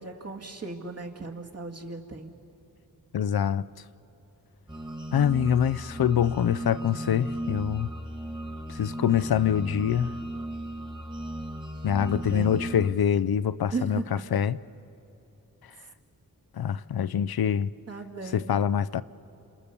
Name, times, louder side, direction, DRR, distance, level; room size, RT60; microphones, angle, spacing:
voice 1, 0.0-2.3 12.1-12.7 13.7-14.3 17.9-18.6, right 3 dB, 40° right, 2.1 m, -36 dB
voice 2, 3.1-3.6 5.1-7.9 8.7-10.1 11.8-14.0 14.3-14.6 16.6-17.7 18.3-19.0, left 9 dB, 80° left, 0.6 m, -25 dB
sound 1, 4.7-12.9, right 1 dB, 15° right, 1.9 m, -36 dB
29.0 x 27.5 x 6.9 m
wide cardioid pair, 70°, 36 cm